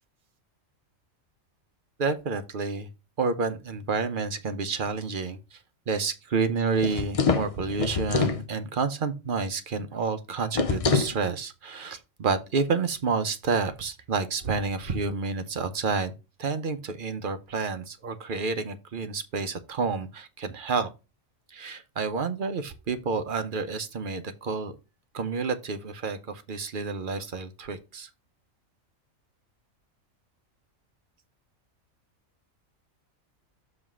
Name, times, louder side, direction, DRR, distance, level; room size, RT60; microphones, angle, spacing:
voice 1, 2.0-2.9 3.2-5.6 5.9-16.1 16.4-20.9 21.5-24.8 25.1-28.1, right 4 dB, 45° right, 0.8 m, -29 dB
sound 1, 6.8-8.4 10.5-11.2, left 4 dB, 45° left, 0.4 m, -25 dB
7.3 x 3.2 x 6.1 m
omnidirectional pair, 1.4 m